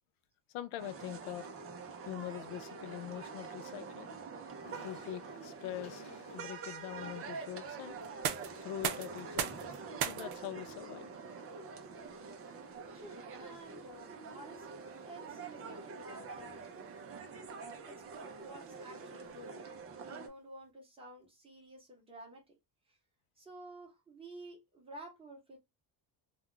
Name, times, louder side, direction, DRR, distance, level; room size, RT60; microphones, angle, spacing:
voice 1, 0.5-1.5 2.1-4.2 4.8-6.0 6.3-8.0 8.6-9.6 10.1-11.1, left 12 dB, 80° left, 0.6 m, -43 dB
sound 1, 0.8-20.3, right 4 dB, 30° right, 0.4 m, -46 dB
sound 2, 4.5-9.7, left 3 dB, 35° left, 1.0 m, -57 dB
sound 3, 8.0-19.8, right 10 dB, 75° right, 0.6 m, -44 dB
voice 2, 12.9-14.8 15.0-17.0 17.6-22.6 22.9-23.0 23.4-25.6, right 1 dB, 10° right, 0.8 m, -52 dB
2.3 x 2.2 x 3.7 m
cardioid pair, 175°, 48 cm